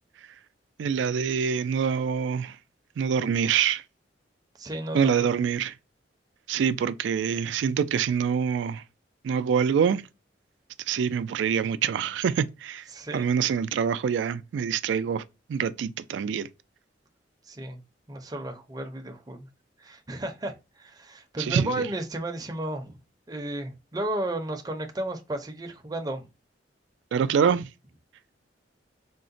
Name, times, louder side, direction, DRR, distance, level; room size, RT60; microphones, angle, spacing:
voice 1, 0.8-2.6 3.0-3.8 4.9-5.7 6.5-8.8 9.2-10.0 10.9-12.8 13.1-15.2 15.5-16.5 21.4-21.9 27.1-27.7, right 7 dB, 80° right, 0.3 m, -25 dB
voice 2, 4.6-5.3 12.9-13.3 17.5-17.8 18.1-19.5 19.8-23.0 23.3-26.3, right 1 dB, 20° right, 0.5 m, -33 dB
3.7 x 2.1 x 2.5 m
head